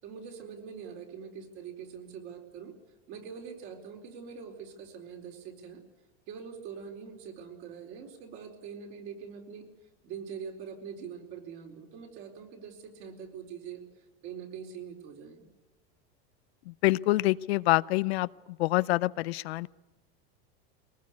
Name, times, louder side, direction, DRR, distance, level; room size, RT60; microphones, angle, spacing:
voice 1, 0.0-2.7 3.1-5.8 6.3-9.7 10.0-15.5, right 7 dB, 45° right, 3 dB, 4.5 m, -43 dB
voice 2, 16.7-18.3 18.6-19.7, left 19 dB, 80° left, 17 dB, 0.7 m, -26 dB
23.0 x 19.5 x 8.4 m, 1.1 s
supercardioid pair, 155°, 31 cm